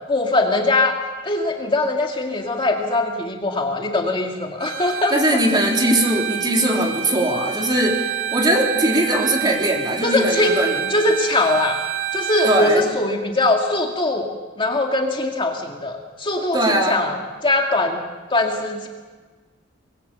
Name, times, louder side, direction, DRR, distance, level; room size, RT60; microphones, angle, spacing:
voice 1, 0.1-0.9 1.2-5.4 10.0-10.6 10.9-11.8 12.1-14.3 14.6-18.0 18.3-18.9, left 2 dB, 25° left, 1 dB, 2.1 m, -21 dB
Bowed string instrument, 4.6-12.7, right 10 dB, 80° right, 3.9 m, -28 dB
voice 2, 5.1-8.0 8.3-10.7 12.4-12.8 16.5-17.0, right 1 dB, 20° right, 0 dB, 3.7 m, -20 dB
25.0 x 21.5 x 6.9 m, 1.4 s
head